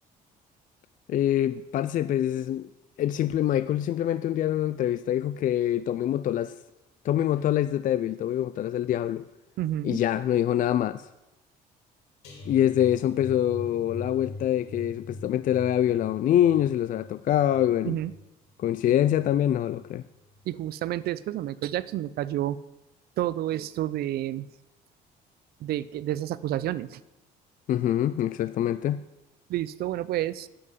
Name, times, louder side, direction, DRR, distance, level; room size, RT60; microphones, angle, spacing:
voice 1, 1.1-2.7 3.0-6.5 7.0-9.2 9.8-11.1 12.5-18.0 18.6-20.0 27.7-29.0, left 11 dB, 50° left, 0.4 m, -25 dB
voice 2, 9.6-10.0 17.9-18.1 20.5-22.6 23.2-24.5 25.6-27.0 29.5-30.5, right 13 dB, 65° right, 0.6 m, -30 dB
sound 1, 12.2-19.3 19.7-20.0 20.3-20.4, left 2 dB, 85° left, 3.0 m, -43 dB
9.7 x 7.8 x 9.1 m
cardioid pair, 110°, 17 cm